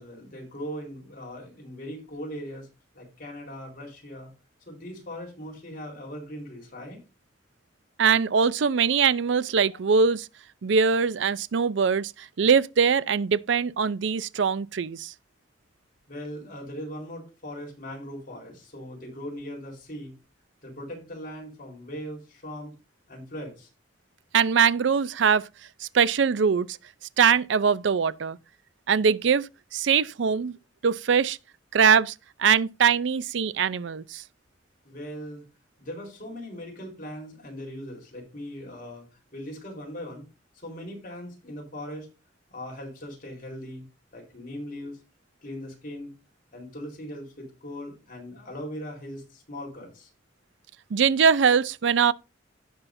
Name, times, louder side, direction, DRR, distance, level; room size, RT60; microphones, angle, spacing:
voice 1, 0.0-2.7 2.9-4.3 4.7-7.0 16.1-20.1 20.6-22.7 23.1-23.7 34.8-35.4 35.8-39.0 39.3-40.3 40.6-42.1 42.5-43.8 44.1-45.0 45.4-46.1 46.5-50.1, equal, 50° left, 4.2 m, -39 dB
voice 2, 8.0-10.3 10.6-15.1 24.3-25.5 25.8-26.7 27.2-28.4 28.9-30.6 30.8-31.4 31.7-32.1 32.4-34.2 50.9-52.1, right 6 dB, 70° right, 0.5 m, -22 dB
16.5 x 5.6 x 2.6 m
head